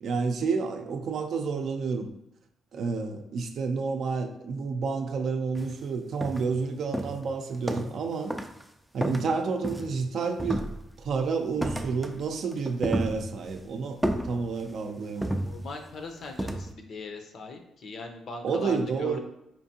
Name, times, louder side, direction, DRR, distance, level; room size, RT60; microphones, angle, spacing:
voice 1, 0.0-2.1 2.7-8.3 8.9-10.6 11.0-14.0 14.2-15.4 18.4-19.2, right 5 dB, 65° right, 4 dB, 0.5 m, -30 dB
sound 1, 5.6-5.7 6.2-6.6 6.9-8.1 8.3-8.6 9.0-10.1 10.4-11.1 11.6-12.2 12.5-13.6 14.0-14.8 15.2-15.9 16.4-16.7, right 1 dB, 5° right, 0.3 m, -32 dB
voice 2, 15.1-19.2, left 3 dB, 60° left, 4 dB, 0.6 m, -40 dB
4.4 x 2.5 x 2.8 m, 0.83 s
cardioid pair, 90°, 0 cm